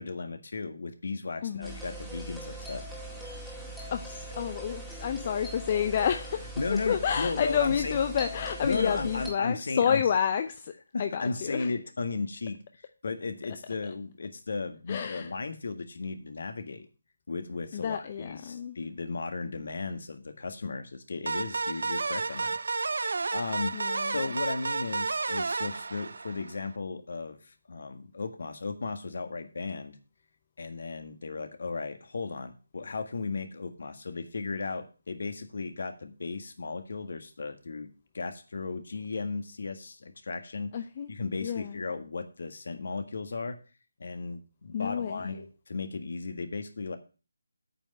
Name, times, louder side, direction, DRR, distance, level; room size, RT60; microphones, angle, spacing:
voice 1, 0.0-2.8 6.6-8.0 8.6-10.0 10.9-12.6 13.0-16.9 17.3-22.6 23.1-23.7 24.1-30.0 30.6-40.7 41.1-43.6 44.0-47.0, left 4 dB, 55° left, 8 dB, 1.7 m, -35 dB
voice 2, 1.4-1.8 3.9-6.4 6.7-10.7 11.0-11.7 13.8-13.9 14.9-15.3 17.7-18.8 23.7-24.2 40.7-41.1 41.4-41.8 44.7-45.3, left 8 dB, 30° left, 8 dB, 0.6 m, -29 dB
sound 1, 1.6-9.3, right 1 dB, ahead, 2.0 m, -41 dB
sound 2, 21.3-26.7, right 3 dB, 60° right, 0.4 m, -31 dB
8.8 x 5.6 x 8.0 m, 0.34 s
figure-of-eight pair, 155°, 0 cm